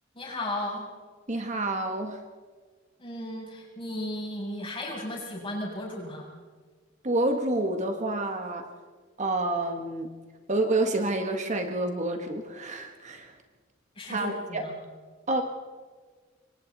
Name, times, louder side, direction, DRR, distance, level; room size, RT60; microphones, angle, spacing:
voice 1, 0.1-0.9 3.0-6.3 13.9-14.7, left 1 dB, 30° left, -3 dB, 7.3 m, -35 dB
voice 2, 1.3-2.2 7.0-8.7 9.2-10.1 10.5-13.3 14.1-14.6 15.3-15.4, right 2 dB, 40° right, 4 dB, 1.6 m, -28 dB
27.0 x 24.0 x 4.2 m, 1.5 s
head